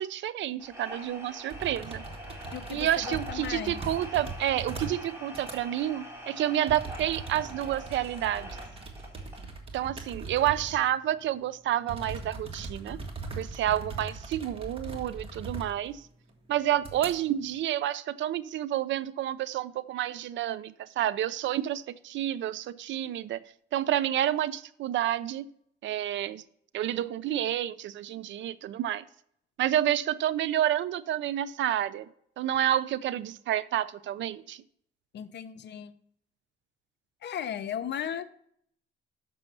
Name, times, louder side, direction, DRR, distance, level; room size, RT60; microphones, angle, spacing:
voice 1, 0.0-2.0 2.7-8.6 9.7-13.0 13.4-16.0 16.5-23.4 23.7-25.4 25.8-26.4 26.7-29.0 29.6-32.1 32.4-34.6, right 12 dB, 70° right, 17 dB, 0.5 m, -29 dB
sound 1, 0.6-9.5, right 1 dB, 10° right, 3.3 m, -44 dB
sound 2, 1.5-5.0 5.3-5.6 6.7-10.9 11.2-11.3 11.9-15.9 16.3-16.4 16.8-17.1, right 3 dB, 30° right, 1.7 m, -40 dB
voice 2, 2.5-3.8 35.1-35.9 37.2-38.2, left 9 dB, 60° left, 12 dB, 0.7 m, -36 dB
6.9 x 6.1 x 5.3 m, 0.68 s
cardioid pair, 90°, 20 cm